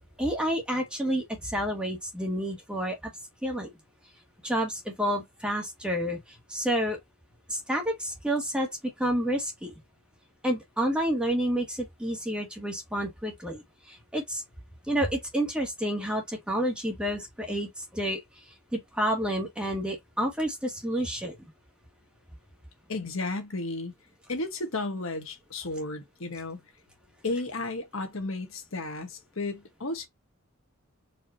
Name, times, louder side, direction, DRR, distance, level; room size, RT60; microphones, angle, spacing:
voice 1, 0.2-3.1 3.4-3.7 4.4-6.2 6.5-7.0 7.5-8.7 9.0-9.7 10.4-13.6 13.9-14.4 14.9-18.2 18.7-21.3, equal, 5° right, 1.5 m, -29 dB
voice 2, 22.9-23.9 24.3-26.6 27.2-30.1, left 2 dB, 70° left, 1.2 m, -33 dB
4.6 x 2.9 x 2.7 m
head